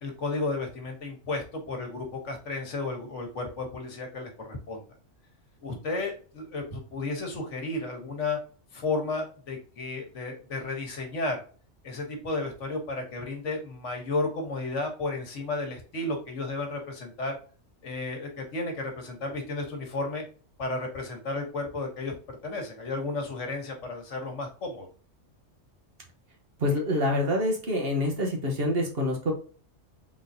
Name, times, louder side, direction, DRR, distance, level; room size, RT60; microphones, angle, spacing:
voice 1, 0.0-4.8 5.6-8.4 8.7-11.4 11.8-17.4 17.8-20.2 20.6-24.9, left 3 dB, 70° left, 3 dB, 1.5 m, -33 dB
voice 2, 26.6-29.3, left 1 dB, 50° right, 0 dB, 1.3 m, -26 dB
3.8 x 3.7 x 2.7 m, 0.39 s
omnidirectional pair, 1.3 m